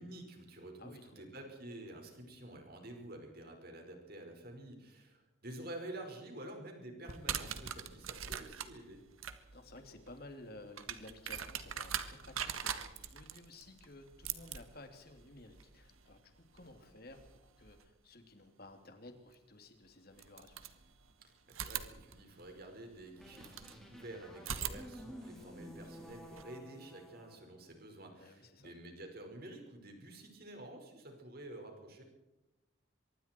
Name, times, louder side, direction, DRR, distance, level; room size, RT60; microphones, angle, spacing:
voice 1, 0.0-9.0 21.2-32.0, right 1 dB, 50° right, 3 dB, 5.3 m, -49 dB
voice 2, 0.8-1.3 9.5-20.6 28.2-28.7, left 2 dB, 50° left, 5 dB, 2.9 m, -54 dB
sound 1, 7.0-17.8 19.3-19.4 20.1-21.1 21.5-23.8 24.4-26.4, right 8 dB, 85° right, 1.6 m, -43 dB
sound 2, 23.2-27.4, equal, ahead, 4.1 m, -52 dB
24.5 x 23.0 x 4.6 m, 0.95 s
head